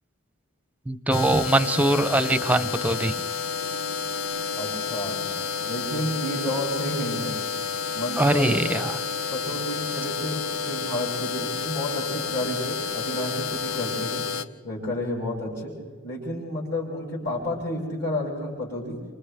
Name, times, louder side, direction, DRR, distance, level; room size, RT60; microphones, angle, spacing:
voice 1, 0.9-3.2 8.2-9.0, right 1 dB, 5° right, 12 dB, 0.7 m, -22 dB
sound 1, 1.1-14.4, left 6 dB, 85° left, 0.7 m, -30 dB
voice 2, 4.5-5.3 5.6-7.3 7.9-8.8 9.3-14.2 14.6-15.7 16.0-19.0, left 1 dB, 60° left, -8 dB, 7.3 m, -31 dB
30.0 x 27.5 x 3.5 m, 1.5 s
head